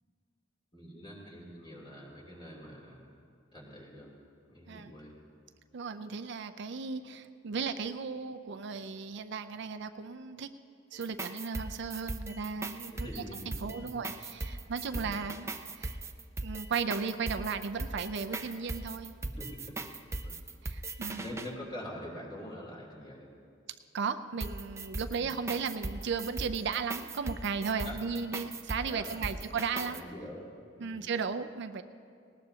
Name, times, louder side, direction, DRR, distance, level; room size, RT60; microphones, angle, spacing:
voice 1, 0.7-3.1 3.5-4.2 4.5-5.1 13.0-13.4 14.6-15.2 19.2-19.8 20.2-20.4 21.1-23.3 25.0-25.4 27.8-28.0 28.9-29.4 29.7-30.5 30.8-31.1, equal, 25° left, -4 dB, 3.1 m, -45 dB
voice 2, 5.7-10.5 10.9-16.0 16.4-19.2 20.6-21.2 23.9-30.0 30.8-31.8, right 5 dB, 65° right, 9 dB, 0.5 m, -35 dB
sound 1, 10.9-21.5 24.4-30.0, right 2 dB, 15° right, 0.5 m, -39 dB
19.0 x 19.0 x 2.8 m, 2.3 s
head